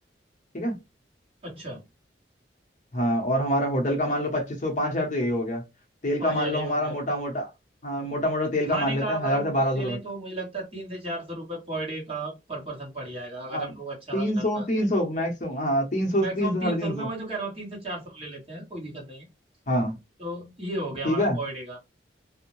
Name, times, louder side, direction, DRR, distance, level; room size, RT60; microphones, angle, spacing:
voice 1, 1.4-1.8 6.2-7.0 8.7-14.9 16.2-19.3 20.2-21.8, right 2 dB, 30° right, 1.2 m, -34 dB
voice 2, 2.9-5.6 6.0-7.5 7.8-10.0 13.5-13.7 14.1-17.1 19.7-20.0 21.0-21.4, equal, 40° left, 0.7 m, -26 dB
2.6 x 2.0 x 3.0 m
head